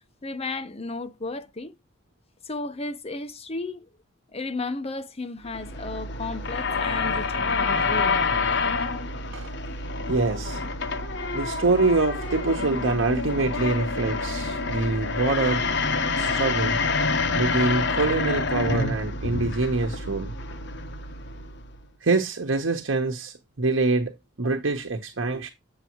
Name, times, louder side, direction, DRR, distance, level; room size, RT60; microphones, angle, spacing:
voice 1, 0.2-1.7 2.4-3.9 4.3-8.2, left 3 dB, 30° left, 1.0 m, -34 dB
sound 1, 5.4-21.8, left 3 dB, 60° left, 1.2 m, -27 dB
voice 2, 10.1-10.6 11.3-15.6 16.2-16.8 17.3-20.3 22.0-25.5, right 3 dB, 80° right, 1.1 m, -25 dB
8.3 x 6.8 x 3.0 m
head